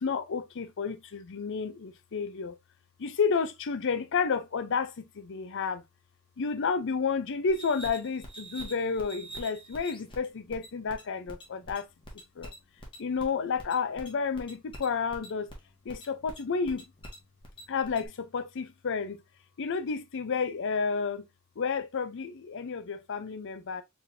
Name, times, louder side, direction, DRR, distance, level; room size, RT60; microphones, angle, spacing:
voice 1, 0.0-2.6 3.0-5.8 6.4-11.9 12.4-12.5 13.0-15.5 15.9-16.8 17.7-19.2 19.6-21.2 21.6-23.8, left 5 dB, 60° left, 0.5 m, -31 dB
sound 1, 7.5-18.1, right 1 dB, 25° left, 1.3 m, -46 dB
4.5 x 3.3 x 2.5 m
head